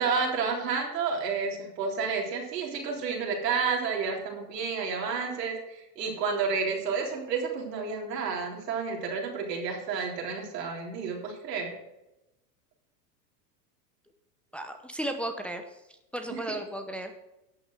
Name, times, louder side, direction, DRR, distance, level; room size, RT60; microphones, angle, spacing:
voice 1, 0.0-11.7 16.3-16.6, right 5 dB, 90° right, 0 dB, 3.7 m, -30 dB
voice 2, 14.5-15.6 16.1-17.1, right 1 dB, ahead, 5 dB, 0.8 m, -34 dB
11.0 x 7.0 x 6.4 m, 0.91 s
supercardioid pair, 130°, 48 cm